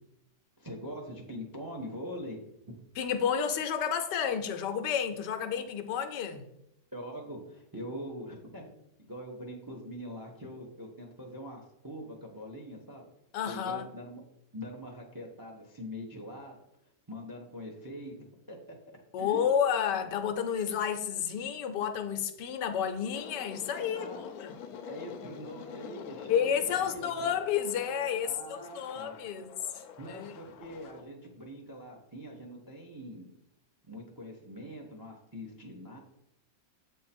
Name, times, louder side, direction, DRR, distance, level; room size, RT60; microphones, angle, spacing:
voice 1, 0.6-2.4 6.9-8.7 9.0-13.0 13.5-14.2 14.5-16.6 17.1-18.1 18.5-18.8 19.2-19.5 23.9-24.2 24.8-27.4 28.2-29.1 30.0-33.3 33.9-36.0, equal, 20° right, 0.5 m, -43 dB
voice 2, 3.0-6.4 13.3-13.9 19.1-24.1 24.4-24.5 26.3-29.5 29.7-30.3, left 8 dB, 90° left, 1.3 m, -31 dB
sound 1, 23.1-31.0, left 7 dB, 70° left, 1.0 m, -46 dB
7.7 x 3.7 x 4.3 m
omnidirectional pair, 1.8 m